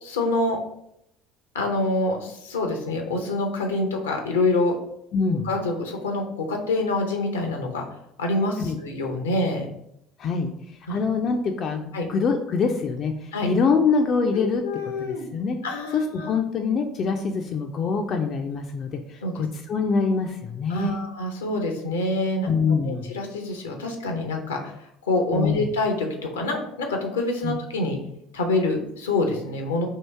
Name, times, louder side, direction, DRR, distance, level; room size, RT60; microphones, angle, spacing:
voice 1, 0.0-0.6 1.5-4.7 5.4-7.9 8.2-9.7 10.9-11.0 11.9-12.1 13.3-13.5 14.3-15.3 15.6-16.3 19.2-19.4 20.7-28.0 28.3-29.9, left 2 dB, 80° left, 3 dB, 0.7 m, -26 dB
voice 2, 5.1-5.5 8.6-8.8 10.2-10.5 10.9-14.6 15.0-15.6 15.9-21.0 22.5-23.0 25.3-25.7 27.4-27.6, left 5 dB, 45° left, 4 dB, 0.4 m, -24 dB
3.0 x 2.8 x 4.5 m, 0.77 s
figure-of-eight pair, 60°, 0 cm